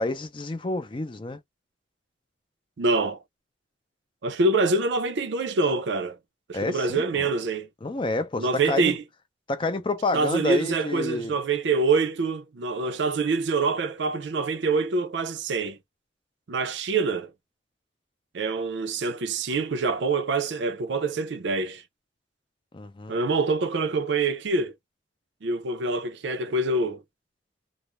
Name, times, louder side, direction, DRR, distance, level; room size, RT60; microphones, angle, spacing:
voice 1, 0.0-1.4 6.5-7.3 7.8-9.0 9.5-11.4 22.7-23.2, left 2 dB, 30° left, 0.5 m, -29 dB
voice 2, 2.8-3.2 4.2-6.2 6.5-7.7 8.4-9.0 10.1-15.8 16.5-17.3 18.3-21.8 23.1-24.7 25.4-27.0, right 3 dB, 80° right, 0.5 m, -25 dB
2.4 x 2.0 x 3.0 m
head